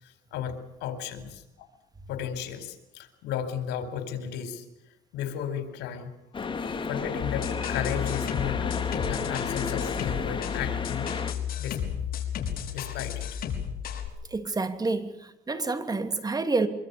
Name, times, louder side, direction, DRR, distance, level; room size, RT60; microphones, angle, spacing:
voice 1, 0.0-1.7 2.1-6.1 6.4-6.5 6.8-8.7 9.0-11.1 11.6-11.8 12.7-13.4, left 9 dB, 85° left, 10 dB, 4.4 m, -34 dB
sound 1, 6.3-11.3, left 5 dB, 30° left, 2.9 m, -32 dB
sound 2, 7.2-14.1, left 9 dB, 60° left, 5.5 m, -33 dB
voice 2, 14.3-16.7, right 3 dB, 20° right, 9 dB, 2.9 m, -28 dB
24.5 x 24.5 x 7.0 m, 0.87 s
cardioid pair, 110°, 17 cm